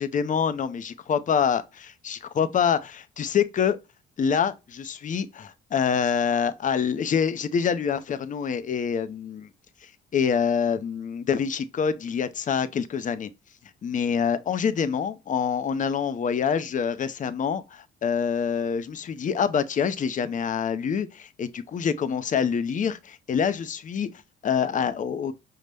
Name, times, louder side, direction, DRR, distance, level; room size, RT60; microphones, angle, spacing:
voice 1, 0.0-3.8 4.2-9.5 9.8-13.3 13.8-24.1 24.4-25.3, left 7 dB, 40° left, 0.5 m, -26 dB
5.2 x 2.1 x 3.3 m
cardioid pair, 90°, 20 cm